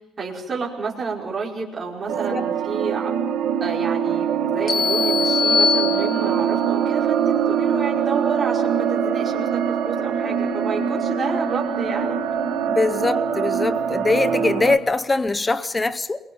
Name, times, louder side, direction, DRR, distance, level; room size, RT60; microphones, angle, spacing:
voice 1, 0.2-3.1 3.6-12.2, right 4 dB, 25° right, 5.3 m, -30 dB
sound 1, 2.1-14.8, right 7 dB, 75° right, 1.5 m, -23 dB
sound 2, 4.7-6.6, left 6 dB, 30° left, 5.5 m, -22 dB
voice 2, 12.7-16.2, left 3 dB, 15° left, 0.8 m, -22 dB
28.0 x 23.0 x 5.5 m
cardioid pair, 155°, 0 cm